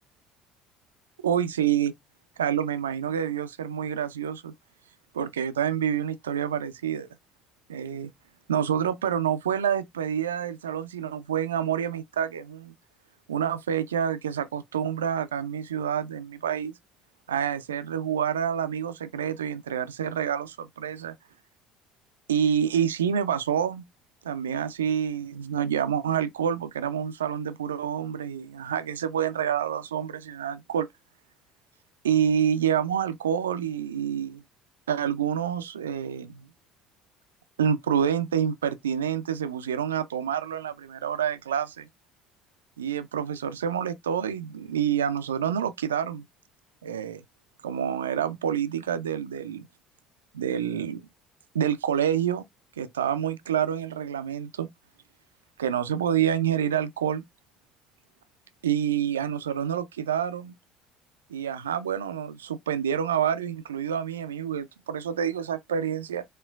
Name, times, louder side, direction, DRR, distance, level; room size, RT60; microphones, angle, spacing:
voice 1, 1.2-1.9 2.4-4.5 5.1-7.1 7.7-8.1 8.5-12.7 13.3-16.7 17.3-21.1 22.3-23.8 24.2-30.9 32.0-34.4 34.9-36.5 37.6-41.9 42.8-46.2 46.8-47.2 47.6-49.7 50.3-51.0 51.5-52.4 52.8-54.7 55.6-57.2 58.6-60.5 61.3-66.2, right 8 dB, 80° right, 0.4 m, -27 dB
4.4 x 3.6 x 2.3 m
figure-of-eight pair, 60°, 0 cm